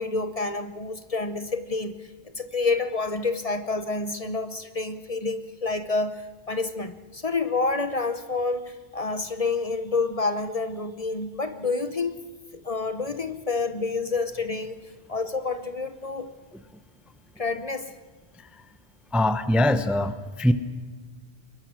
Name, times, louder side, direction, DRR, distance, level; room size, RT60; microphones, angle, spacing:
voice 1, 0.0-12.2 12.5-14.8 15.1-16.3 17.4-17.9, left 3 dB, 35° left, 10 dB, 0.9 m, -28 dB
voice 2, 18.3-18.6 19.1-20.5, left 1 dB, ahead, 11 dB, 0.6 m, -23 dB
22.5 x 21.0 x 6.3 m, 1.4 s
omnidirectional pair, 1.1 m